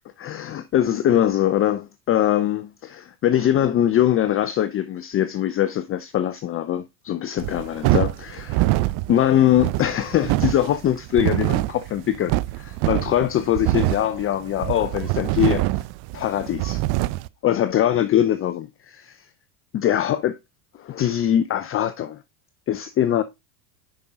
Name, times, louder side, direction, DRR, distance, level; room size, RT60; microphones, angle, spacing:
voice 1, 0.2-15.8 16.1-16.8 17.4-19.3 19.7-20.4 20.8-22.2 22.7-23.2, left 11 dB, 30° left, 0.6 m, -22 dB
sound 1, 7.4-17.3, right 18 dB, 55° right, 0.7 m, -24 dB
10.5 x 5.4 x 3.6 m
supercardioid pair, 100°, 46 cm